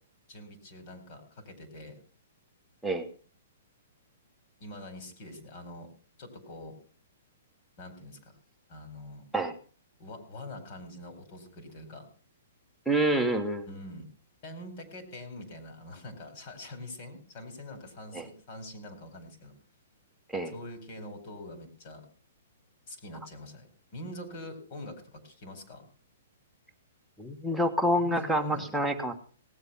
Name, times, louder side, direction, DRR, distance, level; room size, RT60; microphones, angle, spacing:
voice 1, 0.3-2.0 4.6-5.9 6.2-6.7 7.8-8.3 8.7-9.2 10.0-12.1 13.7-14.1 14.4-19.5 20.5-22.1 22.9-23.7 23.9-25.8 27.9-28.8, left 1 dB, 45° left, 7 dB, 4.4 m, -44 dB
voice 2, 12.9-13.7 18.1-18.2 20.3-20.5 27.2-29.1, right 1 dB, ahead, 2 dB, 1.4 m, -27 dB
18.0 x 8.0 x 5.7 m, 0.41 s
hypercardioid pair, 145°, 0 cm